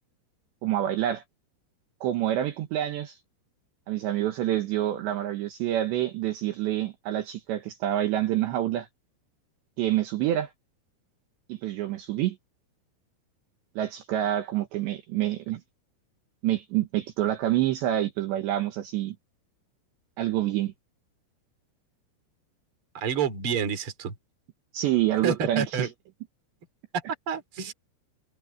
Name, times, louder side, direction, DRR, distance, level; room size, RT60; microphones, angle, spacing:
voice 1, 0.6-1.2 2.0-3.2 3.9-8.9 9.8-10.5 11.5-12.4 13.8-15.6 16.4-19.2 20.2-20.7 24.7-25.9, right 13 dB, 70° right, 3.3 m, -27 dB
voice 2, 22.9-24.1 25.2-25.9 27.3-27.7, right 6 dB, 30° right, 3.2 m, -29 dB
omnidirectional pair, 5.8 m